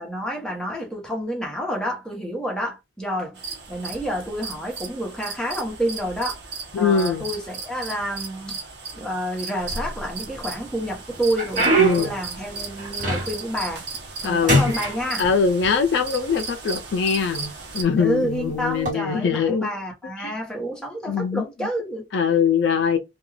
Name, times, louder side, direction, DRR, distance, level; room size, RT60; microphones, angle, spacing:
voice 1, 0.0-3.4 3.7-6.4 6.8-8.6 8.9-13.8 14.2-15.3 18.0-22.1, equal, 5° left, 0.8 m, -29 dB
sound 1, 3.3-17.8, right 4 dB, 65° right, 0.8 m, -36 dB
voice 2, 6.7-7.2 11.8-12.1 14.2-14.6 15.2-19.7 20.2-20.3 21.1-21.4 22.1-23.0, left 6 dB, 65° left, 0.4 m, -22 dB
sound 2, 9.6-10.4 10.8-13.6 13.9-14.2 14.5-15.7 16.5-16.6 17.3-17.5 18.7-18.9, right 2 dB, 45° right, 1.2 m, -23 dB
2.3 x 2.3 x 3.1 m
head